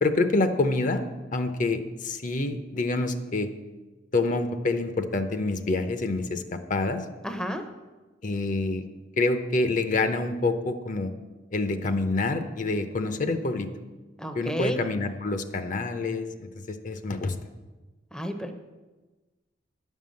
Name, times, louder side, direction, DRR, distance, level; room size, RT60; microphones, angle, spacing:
voice 1, 0.0-1.0 1.3-3.5 4.1-7.0 8.2-8.8 9.2-11.1 11.5-13.7 14.3-17.4, left 3 dB, 45° left, 8 dB, 0.6 m, -27 dB
voice 2, 7.2-7.7 14.2-14.8 18.1-18.5, equal, 5° left, 6 dB, 0.6 m, -31 dB
9.9 x 5.5 x 7.5 m, 1.2 s
head